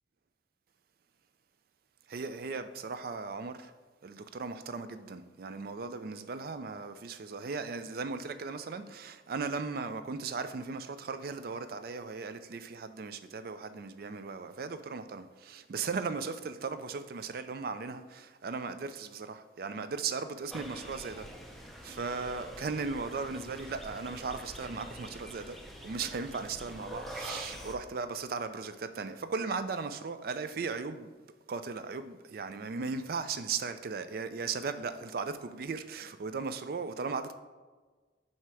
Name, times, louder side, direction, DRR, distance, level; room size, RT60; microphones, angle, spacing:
voice 1, 2.1-3.7 4.0-21.3 21.8-25.6 25.8-31.1 31.5-37.4, right 4 dB, 55° right, 0.4 m, -37 dB
sound 1, 20.5-27.7, equal, ahead, 0.5 m, -45 dB
7.5 x 2.9 x 4.7 m
head